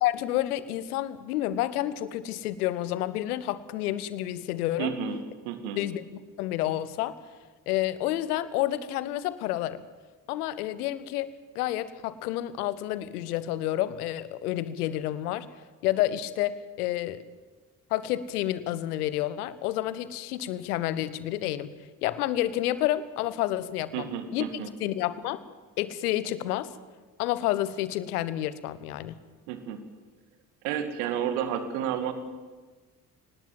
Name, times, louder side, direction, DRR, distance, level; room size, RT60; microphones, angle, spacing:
voice 1, 0.0-5.0 5.8-6.0 6.4-7.2 7.7-9.8 10.3-11.3 11.5-15.5 15.8-17.2 17.9-21.7 22.0-24.4 24.8-25.4 25.8-26.7 27.2-29.1, left 14 dB, 70° left, 16 dB, 1.2 m, -29 dB
voice 2, 4.8-5.8 23.9-24.7 29.5-29.8 30.6-32.1, right 8 dB, 70° right, 9 dB, 2.3 m, -31 dB
22.5 x 19.5 x 7.5 m, 1.3 s
figure-of-eight pair, 45°, 47 cm